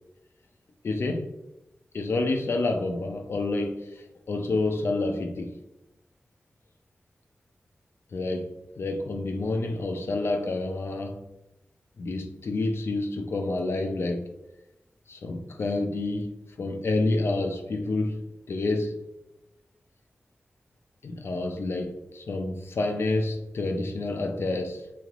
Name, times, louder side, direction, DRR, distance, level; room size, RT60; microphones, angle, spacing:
voice 1, 0.8-1.3 1.9-5.5 8.1-11.2 12.0-14.3 15.1-18.2 18.5-19.0 21.0-24.9, left 2 dB, 80° left, 0.4 m, -28 dB
3.1 x 2.8 x 2.4 m
cardioid pair, 45°, 4 cm